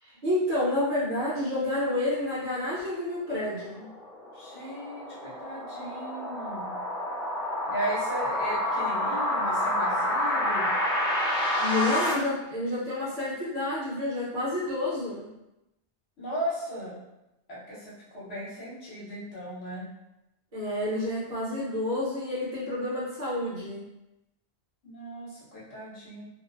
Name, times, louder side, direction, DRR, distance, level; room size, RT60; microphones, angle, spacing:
voice 1, 0.0-3.9 11.6-15.3 20.5-23.9, left 1 dB, 40° right, -9 dB, 0.8 m, -29 dB
sound 1, 3.4-12.1, left 1 dB, 15° left, 0.6 m, -29 dB
voice 2, 4.3-6.8 7.6-10.8 16.2-17.0 17.5-19.9 24.8-26.3, right 1 dB, 65° left, -7 dB, 1.1 m, -36 dB
2.5 x 2.0 x 2.4 m, 0.91 s
omnidirectional pair, 1.2 m